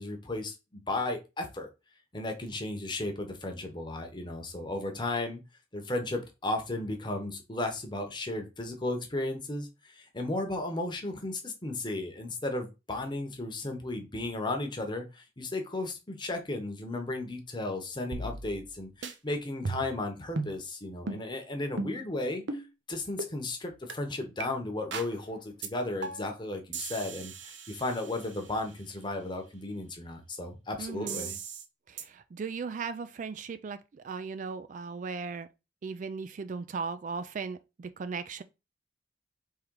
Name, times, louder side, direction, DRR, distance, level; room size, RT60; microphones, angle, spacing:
voice 1, 0.0-1.7 2.1-5.4 5.7-22.6 22.9-31.3, left 2 dB, 25° left, 0.9 m, -35 dB
sound 1, 18.1-18.7 19.0-19.1 19.6-20.0 20.4-20.6 21.1-21.2 21.8-22.1 22.5-22.6 23.2-23.3 23.9-24.0 24.4-24.5 24.9-25.1 25.6-25.7 26.0-26.3 26.7-28.6 31.1-31.6 32.0-32.1, right 3 dB, 75° right, 0.7 m, -37 dB
voice 2, 30.8-31.4 31.9-35.5 35.8-38.4, right 5 dB, 45° right, 0.3 m, -37 dB
3.7 x 3.1 x 4.6 m
head